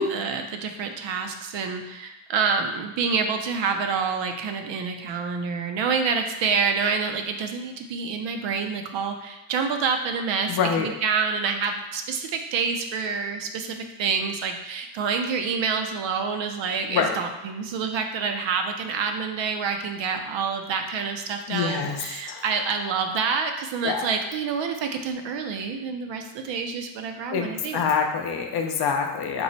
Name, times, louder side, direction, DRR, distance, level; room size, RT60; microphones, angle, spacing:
voice 1, 0.0-27.8, right 5 dB, 70° right, 5 dB, 0.5 m, -27 dB
voice 2, 10.5-10.9 16.9-17.1 21.5-22.4 23.8-24.1 27.3-29.4, left 6 dB, 55° left, 4 dB, 0.5 m, -26 dB
4.6 x 2.0 x 3.9 m, 0.99 s
wide cardioid pair, 165°, 48 cm